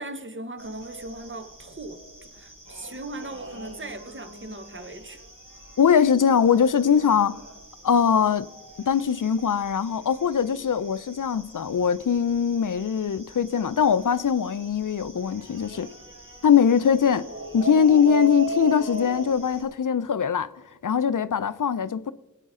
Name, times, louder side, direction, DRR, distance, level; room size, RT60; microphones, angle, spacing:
voice 1, 0.0-5.2, right 2 dB, 40° right, 1.2 m, -38 dB
sound 1, 0.6-19.6, right 2 dB, 80° right, 4.8 m, -40 dB
voice 2, 5.8-7.4 7.8-8.5 8.9-15.9 16.4-17.3 17.5-20.5 20.8-22.1, left 7 dB, 75° left, 0.5 m, -21 dB
20.5 x 9.1 x 3.7 m
wide cardioid pair, 45°, 32 cm